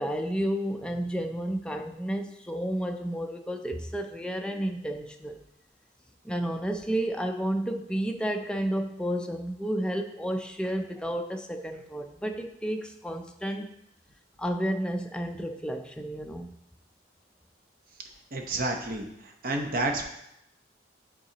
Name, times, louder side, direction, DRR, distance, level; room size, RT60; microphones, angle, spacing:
voice 1, 0.0-5.4 6.2-13.7 14.4-16.5, right 1 dB, 5° left, 4 dB, 0.4 m, -31 dB
voice 2, 18.3-19.1 19.4-20.0, right 2 dB, 50° right, 3 dB, 0.8 m, -29 dB
9.2 x 3.9 x 2.9 m, 0.81 s
head